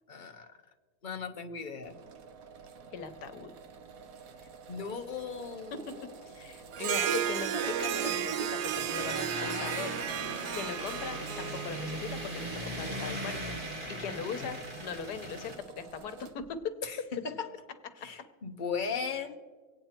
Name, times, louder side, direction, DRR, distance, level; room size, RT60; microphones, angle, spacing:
voice 1, 0.1-0.5 1.0-1.9 4.7-6.1 6.6-6.8 8.7-9.8 12.6-13.1 14.1-14.6 16.8-17.5 18.0-19.4, left 5 dB, 35° left, 5 dB, 1.0 m, -38 dB
sound 1, 1.8-16.5, right 5 dB, 60° right, 1.3 m, -50 dB
voice 2, 2.9-3.5 6.2-13.6 13.9-16.9, left 6 dB, 80° left, 9 dB, 1.5 m, -40 dB
Harp, 6.7-12.5, right 9 dB, 90° right, 1.3 m, -33 dB
sound 2, 8.9-15.6, right 1 dB, 35° right, 1.6 m, -39 dB
24.5 x 9.0 x 4.4 m, 1.4 s
omnidirectional pair, 1.7 m